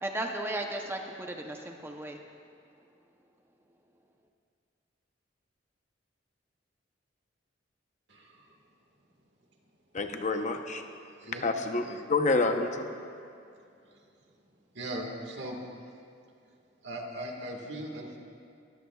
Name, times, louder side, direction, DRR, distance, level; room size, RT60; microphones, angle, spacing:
voice 1, 0.0-2.2, right 1 dB, 15° right, 2 dB, 0.7 m, -35 dB
voice 2, 8.1-8.4 11.2-11.5 14.8-15.6 16.8-18.2, right 1 dB, 65° right, 1 dB, 1.7 m, -38 dB
voice 3, 9.9-10.8 11.4-12.9, left 3 dB, 40° left, 5 dB, 0.8 m, -28 dB
23.0 x 15.0 x 2.4 m, 2.5 s
head